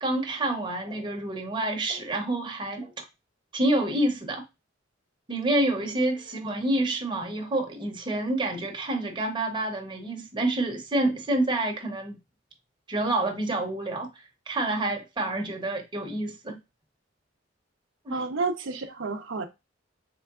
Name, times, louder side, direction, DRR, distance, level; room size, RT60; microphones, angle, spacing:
voice 1, 0.0-3.0 3.5-4.4 5.3-12.2 12.9-16.6 18.0-18.3, right 1 dB, 25° right, 0.8 m, -28 dB
voice 2, 18.1-19.5, right 4 dB, 85° right, 0.6 m, -30 dB
3.8 x 3.3 x 2.3 m
head